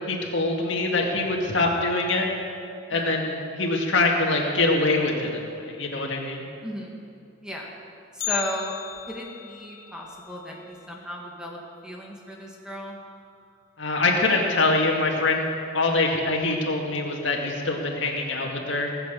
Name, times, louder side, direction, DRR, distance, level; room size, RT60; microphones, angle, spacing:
voice 1, 0.1-2.3 2.9-6.4 13.8-15.4 15.7-18.9, left 2 dB, 65° left, -1 dB, 2.2 m, -24 dB
voice 2, 6.6-7.0 7.4-7.7 8.1-8.8 9.1-13.0, equal, 5° right, -2 dB, 1.9 m, -35 dB
Bell, 8.2-12.3 12.6-12.7 13.1-13.2 14.0-14.1 14.9-15.2 15.5-15.6, left 12 dB, 90° left, 1.8 m, -37 dB
19.0 x 8.2 x 6.9 m, 2.5 s
head